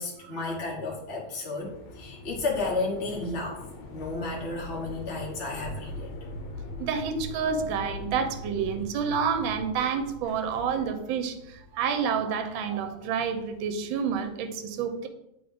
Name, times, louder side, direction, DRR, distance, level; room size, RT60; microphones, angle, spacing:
voice 1, 0.0-3.6 3.9-6.1, left 3 dB, 40° left, -2 dB, 1.1 m, -32 dB
sound 1, 1.6-14.4, left 1 dB, 75° left, 1.5 m, -42 dB
voice 2, 6.8-15.1, right 6 dB, 75° right, 7 dB, 1.4 m, -29 dB
9.4 x 3.5 x 3.5 m, 0.84 s
omnidirectional pair, 2.2 m